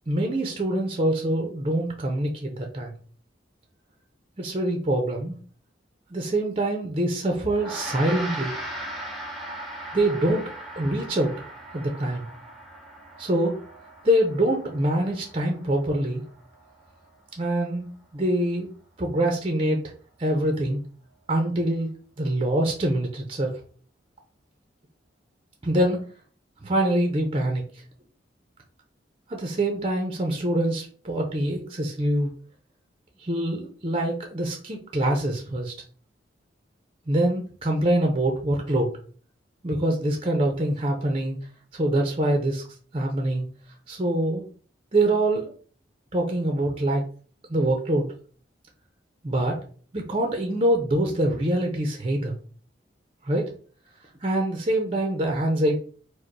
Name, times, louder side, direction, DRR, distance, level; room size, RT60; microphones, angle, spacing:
voice 1, 0.1-2.9 4.4-5.4 6.1-8.5 9.9-11.4 11.7-12.3 13.2-13.6 14.0-16.2 17.4-17.9 18.1-18.7 19.0-19.8 20.2-20.8 21.3-21.9 22.2-23.5 25.6-26.0 26.6-27.6 29.3-32.3 33.2-35.7 37.1-38.9 39.6-41.4 41.7-42.6 42.9-43.5 43.9-44.4 44.9-45.5 46.1-47.0 47.5-48.1 49.2-49.6 49.9-52.4 53.2-53.5 54.2-55.8, right 1 dB, 30° right, 2 dB, 0.7 m, -24 dB
Gong, 7.5-17.1, right 1 dB, ahead, 1.0 m, -39 dB
4.9 x 2.2 x 4.6 m, 0.43 s
head